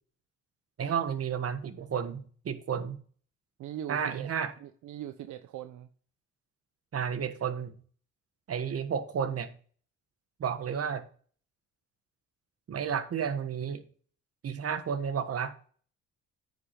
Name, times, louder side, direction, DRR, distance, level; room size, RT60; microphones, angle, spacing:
voice 1, 0.8-3.0 3.9-4.5 6.9-7.7 8.5-9.5 10.4-11.0 12.7-13.8 14.4-15.5, right 7 dB, 50° right, 1.5 m, -32 dB
voice 2, 3.6-4.3 4.6-5.9, right 11 dB, 75° right, 0.7 m, -41 dB
9.5 x 5.3 x 5.8 m
cardioid pair, 90°, 30 cm